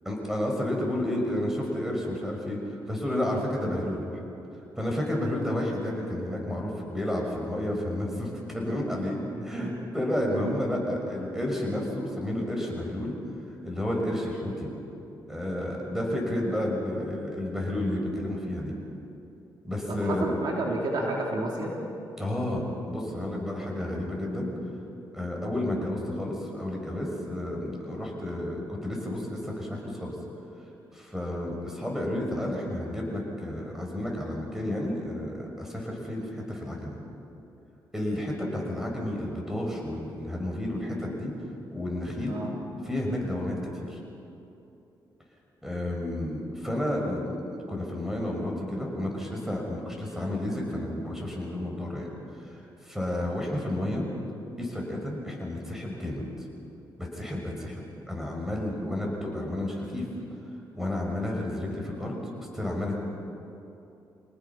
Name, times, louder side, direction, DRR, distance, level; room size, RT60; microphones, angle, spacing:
voice 1, 0.0-2.6 2.9-4.2 4.8-13.1 13.6-14.7 15.3-18.7 19.6-20.4 22.2-24.5 25.1-30.1 30.9-37.0 37.9-41.3 41.7-42.4 42.8-44.0 45.6-52.1 52.4-54.0 54.6-56.3 57.0-57.8 58.1-60.1 60.7-62.9, left 1 dB, 5° right, -1 dB, 6.2 m, -31 dB
voice 2, 9.4-9.8 10.3-10.5 19.9-21.7 42.3-42.5, right 2 dB, 65° right, -1 dB, 3.5 m, -31 dB
27.0 x 19.0 x 6.0 m, 2.9 s
cardioid pair, 80°, 8 cm